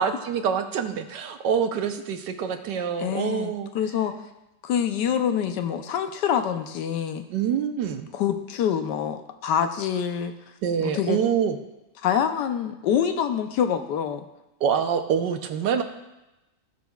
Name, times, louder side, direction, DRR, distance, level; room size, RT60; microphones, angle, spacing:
voice 1, 0.0-3.7 7.3-8.1 10.6-11.6 14.6-15.8, right 7 dB, 90° right, 7 dB, 1.4 m, -25 dB
voice 2, 3.0-4.1 4.6-7.2 8.1-10.3 10.8-11.2 12.0-14.2, left 8 dB, 85° left, 8 dB, 1.3 m, -26 dB
17.0 x 6.2 x 2.3 m, 0.97 s
omnidirectional pair, 1.8 m